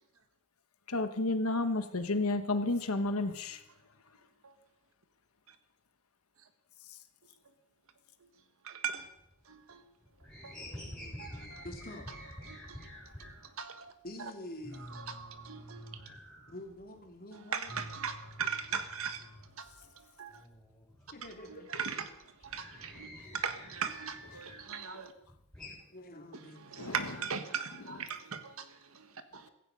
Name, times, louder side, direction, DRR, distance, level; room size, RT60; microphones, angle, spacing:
voice 1, 0.9-3.6 26.8-27.1, left 2 dB, 75° left, 1.1 m, -31 dB
voice 2, 8.6-9.1 9.5-9.8 10.4-10.5 11.2-11.6 12.5-13.9 14.2-14.3 14.9-16.1 17.5-19.3 19.6-20.4 21.5-22.1 22.4-23.1 23.3-25.1 26.3-29.5, right 6 dB, 70° right, 1.6 m, -39 dB
sound 1, 9.0-9.7 10.0-13.5 13.9-14.0 14.3-14.4 14.6-17.1 17.3-20.0 20.3-24.7 25.1-25.8, equal, 5° left, 6.4 m, -49 dB
voice 3, 10.6-12.1 14.0-15.0 16.5-17.8 21.1-21.9 23.0-23.4 25.9-27.0, left 1 dB, 40° left, 3.0 m, -48 dB
16.5 x 15.0 x 5.3 m
head